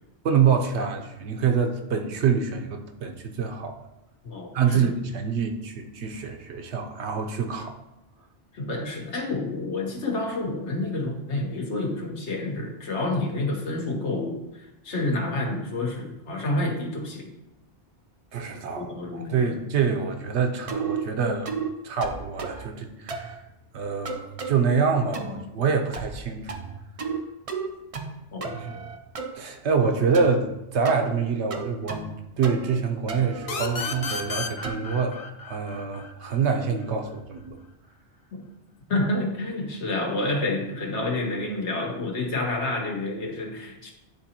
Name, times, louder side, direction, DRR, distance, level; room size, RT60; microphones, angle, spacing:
voice 1, 0.2-3.8 4.5-7.7 18.3-21.5 21.8-23.4 23.7-26.5 28.5-28.8 29.3-32.1 32.4-37.6, right 6 dB, 75° right, 4 dB, 1.0 m, -26 dB
voice 2, 4.2-4.9 8.5-17.3 18.7-19.5 28.3-28.6 38.3-38.4 38.9-43.9, left 2 dB, 75° left, 0 dB, 1.4 m, -29 dB
sound 1, 20.7-21.0 21.5-21.7 22.0-22.7 23.1-23.4 24.1-24.6 25.1-25.5 25.9-26.2 26.5-27.2 27.5-28.1 28.4-29.3 30.1-30.4 30.8-31.0 31.5-32.2 32.4-32.8 33.1-34.9, right 5 dB, 45° right, 0.5 m, -33 dB
sound 2, 33.5-36.9, left 5 dB, 55° left, 0.4 m, -33 dB
9.7 x 3.8 x 2.9 m, 0.90 s
omnidirectional pair, 1.2 m